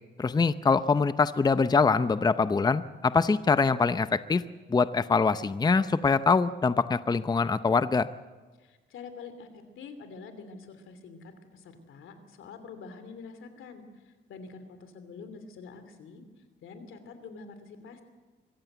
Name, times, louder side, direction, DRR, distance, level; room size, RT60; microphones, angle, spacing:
voice 1, 0.2-4.4 4.7-8.1, left 4 dB, 20° left, 13 dB, 0.6 m, -24 dB
voice 2, 8.6-9.5 9.8-16.2 16.6-18.0, left 4 dB, 85° left, 9 dB, 3.0 m, -46 dB
24.5 x 15.0 x 8.1 m, 1.3 s
cardioid pair, 115°, 20 cm